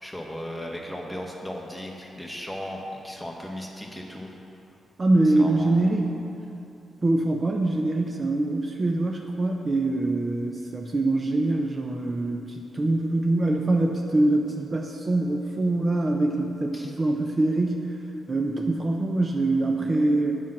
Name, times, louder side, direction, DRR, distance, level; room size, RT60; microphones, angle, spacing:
voice 1, 0.0-4.3 5.2-6.0 16.7-16.9, equal, 5° left, 0 dB, 1.2 m, -36 dB
voice 2, 5.0-6.1 7.0-17.9 18.3-20.3, right 2 dB, 35° right, 2 dB, 0.6 m, -24 dB
7.3 x 6.1 x 5.9 m, 2.8 s
cardioid pair, 75°, 0 cm